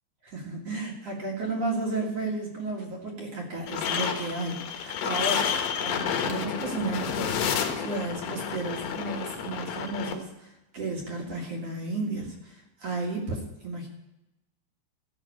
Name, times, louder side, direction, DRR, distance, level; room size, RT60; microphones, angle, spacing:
voice 1, 0.2-5.5 5.8-13.9, right 2 dB, 50° right, -1 dB, 1.9 m, -33 dB
sound 1, 3.7-10.1, left 7 dB, 70° left, 2.6 m, -30 dB
15.5 x 6.0 x 8.4 m, 0.94 s
omnidirectional pair, 5.4 m